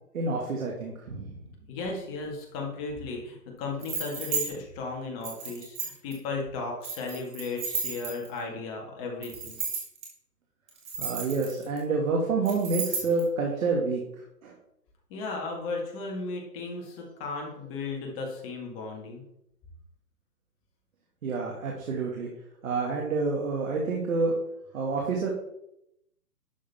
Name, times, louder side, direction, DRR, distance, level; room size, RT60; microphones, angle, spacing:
voice 1, 0.1-1.4 11.0-14.0 14.4-14.5 21.2-22.3 22.6-24.4 24.7-25.3, right 3 dB, 55° right, 0 dB, 2.1 m, -28 dB
voice 2, 1.7-9.6 15.1-19.2, left 3 dB, 20° left, 0 dB, 1.8 m, -35 dB
sound 1, 3.8-4.5 5.2-6.1 6.8-8.4 9.2-10.1 10.7-11.8 12.5-13.2, right 5 dB, 10° right, 1.6 m, -33 dB
11.5 x 6.4 x 3.5 m, 0.81 s
hypercardioid pair, 150°, 48 cm